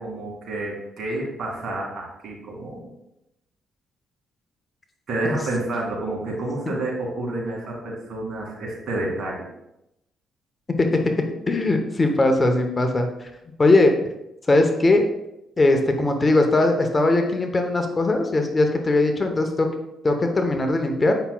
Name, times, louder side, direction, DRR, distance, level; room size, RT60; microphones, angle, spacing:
voice 1, 0.0-2.9 5.1-9.5, right 2 dB, 60° right, -2 dB, 2.3 m, -29 dB
voice 2, 11.5-13.3 13.6-14.0 14.5-15.1 15.6-19.7 20.0-21.1, left 2 dB, 25° left, 5 dB, 0.8 m, -20 dB
7.9 x 5.6 x 2.3 m, 0.86 s
cardioid pair, 90°, 0 cm